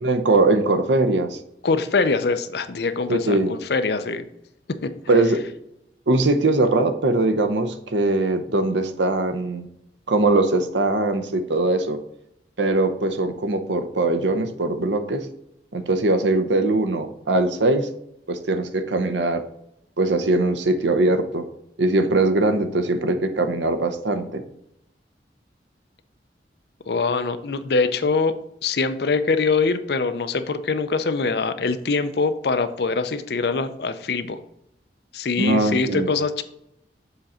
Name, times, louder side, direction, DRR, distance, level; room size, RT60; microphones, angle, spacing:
voice 1, 0.0-1.4 3.1-3.5 5.1-5.4 6.1-9.7 10.1-12.0 12.6-15.3 15.7-17.9 18.3-19.4 20.0-21.5 21.8-24.4 35.4-36.1, right 2 dB, 80° right, 8 dB, 0.7 m, -21 dB
voice 2, 1.6-4.2 4.7-4.9 26.9-28.3 28.6-34.4 35.1-36.4, left 4 dB, 60° left, 10 dB, 0.5 m, -23 dB
7.0 x 3.8 x 4.2 m, 0.80 s
head